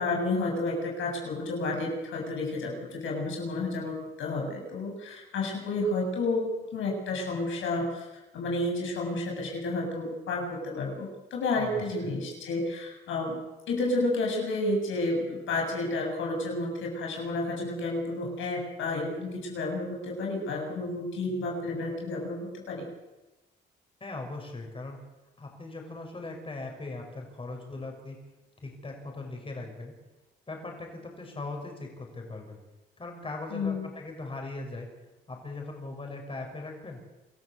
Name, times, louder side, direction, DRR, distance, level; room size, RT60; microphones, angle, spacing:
voice 1, 0.0-8.1 8.3-13.4 13.7-22.9 33.5-33.9, left 2 dB, 75° left, 1 dB, 7.9 m, -31 dB
voice 2, 11.5-12.1 24.0-25.0 25.4-28.2 28.6-29.9 30.5-32.6 33.0-34.9 35.3-37.0, left 2 dB, 25° left, 2 dB, 6.6 m, -39 dB
27.0 x 14.0 x 8.1 m, 1.1 s
cardioid pair, 90°, 20 cm